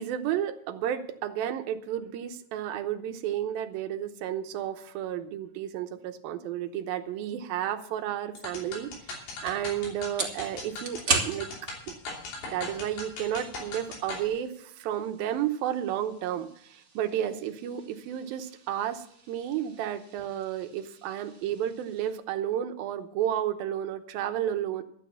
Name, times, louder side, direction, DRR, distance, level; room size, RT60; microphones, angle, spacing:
voice 1, 0.0-8.9 9.4-11.5 12.5-24.8, right 10 dB, 75° right, 6 dB, 2.3 m, -32 dB
sound 1, 8.4-14.3, left 3 dB, 70° left, 5.0 m, -40 dB
sound 2, 8.9-22.1, right 4 dB, 40° right, 1.1 m, -39 dB
12.5 x 9.3 x 7.0 m, 0.67 s
omnidirectional pair, 5.0 m